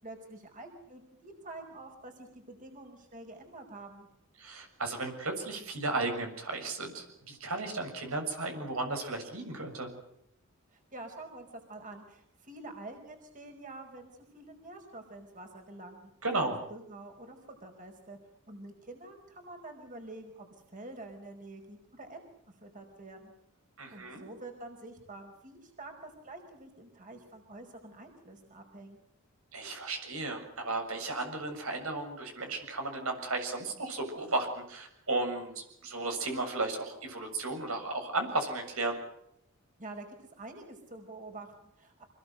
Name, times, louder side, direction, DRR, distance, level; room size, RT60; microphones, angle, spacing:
voice 1, 0.0-4.1 10.7-16.4 16.7-18.2 18.5-23.3 23.9-29.0 39.8-40.1 40.4-42.0, right 2 dB, 40° right, 4 dB, 5.0 m, -47 dB
voice 2, 4.4-9.9 16.2-16.6 23.8-24.2 29.5-39.0, right 2 dB, 80° right, 4 dB, 7.1 m, -34 dB
26.5 x 21.0 x 8.1 m, 0.77 s
head